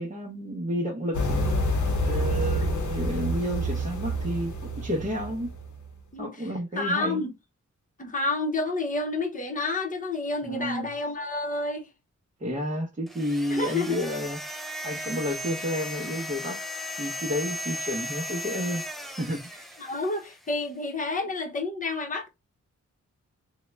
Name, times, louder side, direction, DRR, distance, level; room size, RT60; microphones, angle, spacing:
voice 1, 0.0-1.4 2.0-5.5 6.2-7.2 10.4-10.9 12.4-16.6 17.0-19.7, equal, 25° right, 0.8 m, -31 dB
sound 1, 1.1-5.9, equal, 80° left, 0.8 m, -28 dB
voice 2, 6.7-7.3 8.0-11.9 13.5-14.1 14.9-15.1 19.8-22.3, left 2 dB, 25° left, 0.8 m, -29 dB
sound 2, 13.1-20.4, left 1 dB, ahead, 0.4 m, -36 dB
3.7 x 2.2 x 3.1 m
wide cardioid pair, 135°, 30 cm